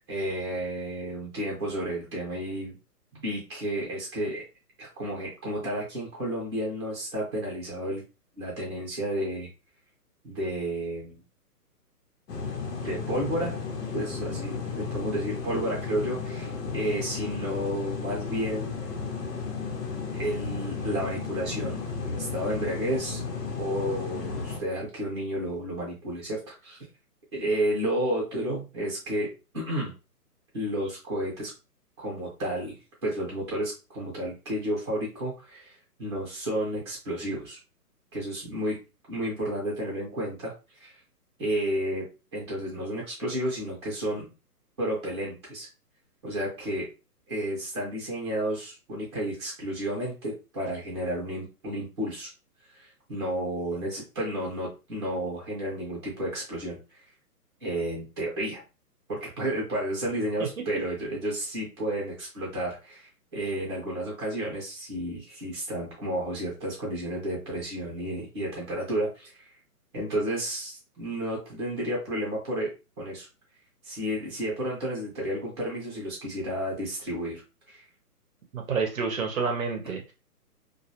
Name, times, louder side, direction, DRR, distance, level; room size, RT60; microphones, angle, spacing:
voice 1, 0.0-2.8 3.1-4.4 4.8-8.0 8.4-9.5 10.2-11.2 12.8-13.5 13.9-18.8 20.1-21.8 22.1-23.2 23.6-26.8 27.3-29.9 30.5-31.5 32.0-37.6 38.1-38.8 39.1-40.5 40.8-40.9 41.4-42.0 42.3-44.3 44.8-45.7 46.2-46.9 47.3-52.3 52.7-56.8 57.6-58.6 59.1-69.5 69.9-72.7 73.0-73.3 73.8-77.4 77.7-77.8, right 1 dB, 15° right, -5 dB, 0.7 m, -31 dB
sound 1, 12.3-24.6, left 5 dB, 90° left, 0.9 m, -34 dB
voice 2, 78.5-80.1, right 5 dB, 55° right, 3 dB, 0.7 m, -29 dB
2.3 x 2.0 x 2.8 m, 0.30 s
hypercardioid pair, 170°, 47 cm